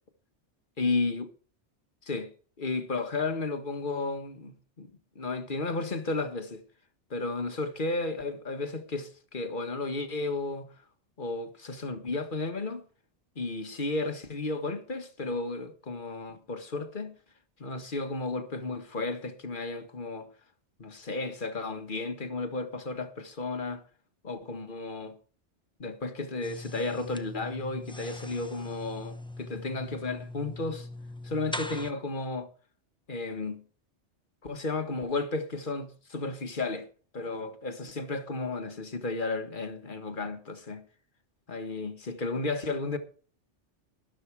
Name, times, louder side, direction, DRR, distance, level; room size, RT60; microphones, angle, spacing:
voice 1, 0.8-1.3 2.0-2.3 2.6-4.9 5.2-6.6 7.1-10.7 11.2-12.8 13.4-17.2 17.6-20.3 20.8-23.8 24.2-25.2 25.8-30.9 31.3-32.5 33.1-33.6 34.4-36.9 37.1-40.8 41.5-43.0, left 3 dB, 45° left, 1.6 m, -33 dB
sound 1, 26.4-31.9, left 1 dB, 5° left, 0.8 m, -41 dB
13.0 x 12.0 x 4.7 m
omnidirectional pair, 1.2 m